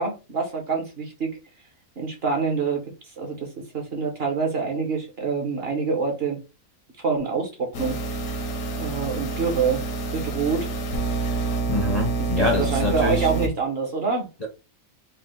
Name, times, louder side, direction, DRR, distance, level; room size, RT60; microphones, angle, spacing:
voice 1, 0.0-1.4 2.0-2.8 3.2-6.4 7.0-8.0 8.8-9.8 10.1-10.7 12.6-14.3, right 5 dB, 45° right, 1.2 m, -26 dB
sound 1, 7.7-13.5, right 3 dB, 70° left, 1.3 m, -27 dB
voice 2, 11.7-13.3 14.4-14.5, left 2 dB, 35° left, 0.7 m, -25 dB
4.2 x 2.3 x 3.7 m
omnidirectional pair, 1.6 m